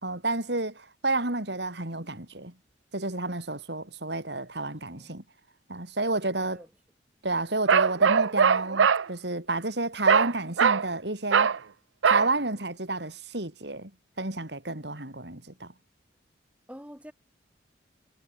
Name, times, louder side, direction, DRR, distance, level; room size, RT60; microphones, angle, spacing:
voice 1, 0.0-2.5 2.9-5.2 5.7-6.6 7.2-11.5 12.0-13.9 14.2-15.7, right 2 dB, 60° right, 3.8 m, -30 dB
Bark, 7.7-9.1 10.1-10.3 10.6-10.9 11.3-11.6 12.0-12.3, right 6 dB, 80° right, 0.6 m, -21 dB
voice 2, 16.7-17.1, equal, 5° right, 7.4 m, -46 dB
head